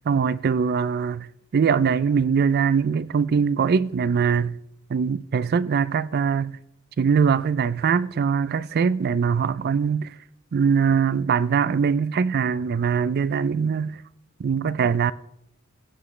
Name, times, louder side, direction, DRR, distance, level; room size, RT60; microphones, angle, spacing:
voice 1, 0.1-1.3 1.5-4.6 4.9-6.6 7.0-10.1 10.5-14.0 14.4-15.1, right 6 dB, 50° right, 0.4 m, -22 dB
17.0 x 7.3 x 3.2 m
head